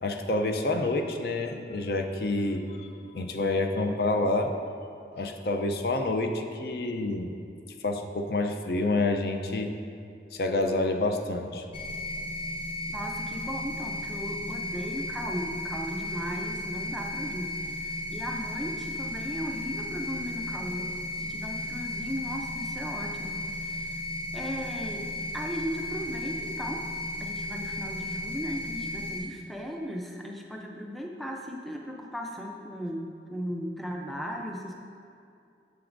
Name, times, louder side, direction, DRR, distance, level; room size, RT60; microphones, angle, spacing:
voice 1, 0.0-4.5 5.1-7.3 7.8-9.7 10.3-11.6, left 2 dB, 60° left, 4 dB, 0.5 m, -28 dB
sound 1, 11.7-29.2, left 1 dB, 35° left, 1.1 m, -35 dB
voice 2, 12.9-20.9 21.2-24.0 24.3-26.9 27.2-34.7, equal, ahead, 0 dB, 0.5 m, -37 dB
9.1 x 7.0 x 2.6 m, 2.5 s
head